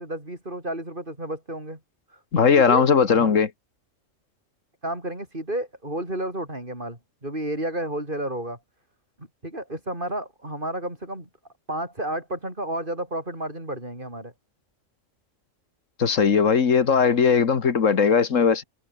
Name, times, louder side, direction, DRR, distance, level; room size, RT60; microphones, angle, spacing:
voice 1, 0.0-1.8 2.1-3.4 4.8-8.6 9.2-11.3 11.7-14.3, right 1 dB, 40° right, 7.3 m, -32 dB
voice 2, 2.3-3.5 16.0-18.6, left 6 dB, 75° left, 1.9 m, -19 dB
omnidirectional pair, 1.3 m